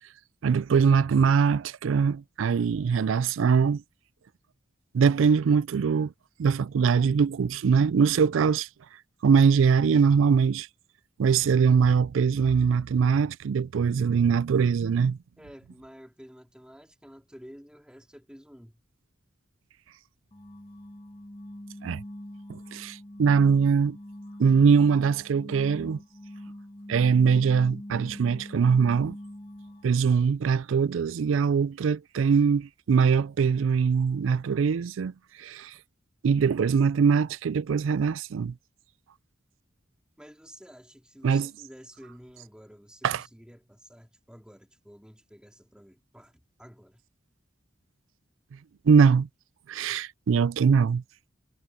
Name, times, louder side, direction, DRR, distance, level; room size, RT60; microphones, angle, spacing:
voice 1, 0.4-3.8 4.9-6.1 6.4-8.7 9.2-10.7 11.2-15.2 21.8-22.0 22.5-24.0 24.4-26.0 26.9-29.1 29.8-35.1 35.4-35.7 36.2-38.5 41.2-41.5 43.0-43.2 48.9-49.3 49.7-51.0, right 6 dB, 85° right, 0.4 m, -22 dB
voice 2, 15.4-18.8 40.2-47.0, equal, 5° right, 3.9 m, -50 dB
sound 1, 20.3-30.0, left 1 dB, 25° left, 1.3 m, -43 dB
head